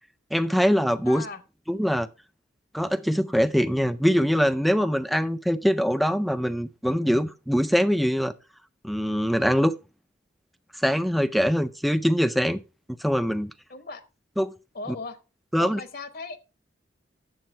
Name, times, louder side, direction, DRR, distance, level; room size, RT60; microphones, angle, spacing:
voice 1, 0.3-1.2 1.7-2.1 2.7-8.3 8.8-9.7 10.7-12.6 12.9-13.5 14.4-14.5 14.9-15.0 15.5-15.8, equal, ahead, 0.4 m, -23 dB
voice 2, 1.0-1.4 13.7-14.0 14.7-15.2 15.6-16.4, left 3 dB, 55° left, 1.0 m, -37 dB
9.5 x 7.5 x 4.4 m
head